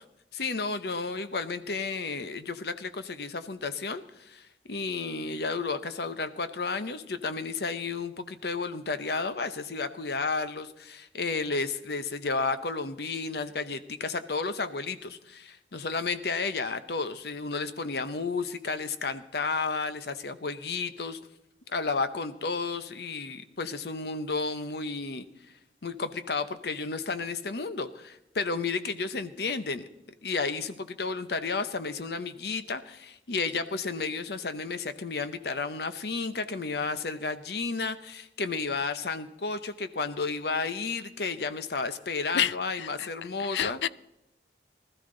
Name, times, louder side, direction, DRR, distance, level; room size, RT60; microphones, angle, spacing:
voice 1, 0.3-21.2 21.7-25.2 25.8-29.8 30.2-43.8, left 4 dB, 65° left, 11 dB, 0.8 m, -32 dB
voice 2, 43.5-43.9, left 9 dB, 80° left, 18 dB, 0.5 m, -28 dB
20.0 x 13.0 x 3.9 m, 0.86 s
head